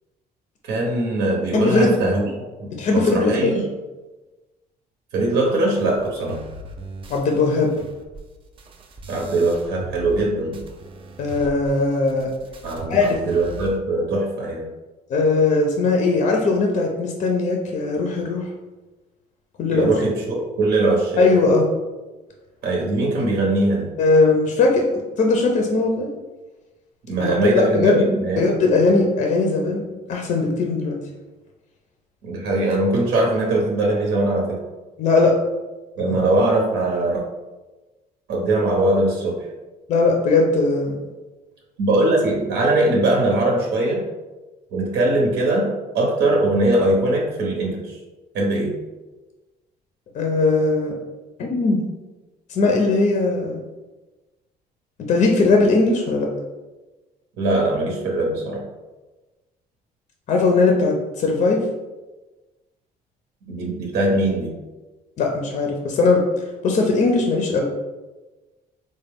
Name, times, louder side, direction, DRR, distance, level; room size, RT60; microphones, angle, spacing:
voice 1, 0.7-3.6 5.1-6.4 9.1-10.6 12.6-14.7 19.7-21.3 22.6-23.9 27.1-28.6 32.2-34.6 36.0-37.2 38.3-39.5 41.8-44.0 44.7-48.0 48.3-48.7 57.4-58.6 63.5-64.5, right 2 dB, 85° right, -1 dB, 0.8 m, -21 dB
voice 2, 1.5-1.9 2.7-3.5 7.1-7.7 11.2-12.3 12.9-13.2 15.1-18.5 19.6-19.9 21.2-21.6 24.0-26.1 27.2-28.0 28.4-31.0 35.0-35.4 36.0-36.2 39.9-41.0 50.1-50.9 51.4-51.8 52.5-53.6 55.0-56.3 60.3-61.7 65.2-66.2 66.6-67.6, left 3 dB, 45° left, 1 dB, 0.4 m, -19 dB
sound 1, 5.8-10.3 10.5-13.8, right 2 dB, 30° right, 0.4 m, -39 dB
4.0 x 2.1 x 3.4 m, 1.2 s
cardioid pair, 160°, 17 cm